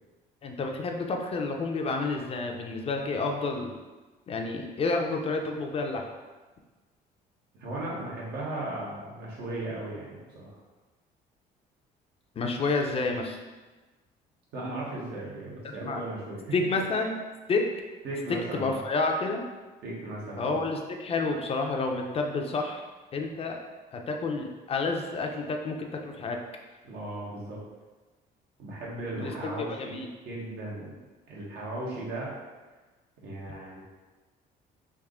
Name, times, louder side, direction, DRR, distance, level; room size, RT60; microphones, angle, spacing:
voice 1, 0.4-3.7 4.3-6.0 12.4-13.4 15.6-16.0 16.5-17.2 17.5-17.6 18.5-19.4 20.4-22.8 23.1-23.6 23.9-26.4 29.2-30.1, left 3 dB, 35° left, 3 dB, 0.5 m, -29 dB
voice 2, 7.6-10.5 14.5-16.4 18.0-18.8 19.8-20.6 26.8-27.6 28.6-29.9 30.2-30.9 31.3-32.3 33.2-33.8, right 2 dB, 75° right, -5 dB, 1.2 m, -36 dB
3.5 x 2.6 x 3.6 m, 1.2 s
cardioid pair, 110°, 17 cm